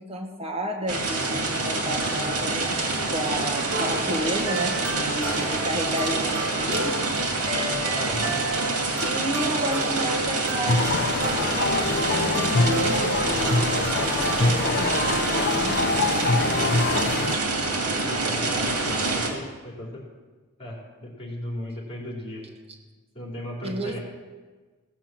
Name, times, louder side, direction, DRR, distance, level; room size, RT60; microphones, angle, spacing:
voice 1, 0.0-7.0 9.0-16.7 23.6-24.0, equal, 25° right, 1 dB, 1.5 m, -32 dB
sound 1, 0.9-19.3, right 3 dB, 85° right, 2.2 m, -27 dB
sound 2, 3.7-15.7, right 2 dB, 60° right, 1.8 m, -33 dB
voice 2, 7.9-8.4 17.9-20.0 20.6-22.5 23.1-24.0, left 1 dB, 25° left, -2 dB, 3.1 m, -36 dB
sound 3, 10.7-17.4, left 3 dB, 45° left, 0.5 m, -25 dB
16.5 x 6.0 x 7.4 m, 1.3 s
head